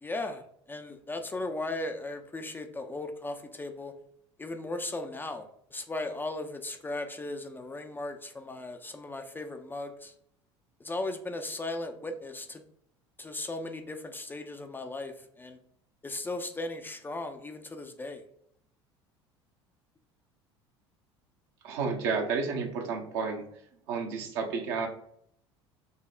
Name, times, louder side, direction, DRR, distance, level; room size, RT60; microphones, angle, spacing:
voice 1, 0.0-3.9 4.4-10.1 10.8-12.6 13.2-15.6 16.0-18.2, left 2 dB, 15° left, 5 dB, 0.4 m, -37 dB
voice 2, 21.6-23.4 23.9-24.9, right 5 dB, 65° right, 2 dB, 0.8 m, -31 dB
5.0 x 2.0 x 2.4 m, 0.69 s
figure-of-eight pair, 65°, 14 cm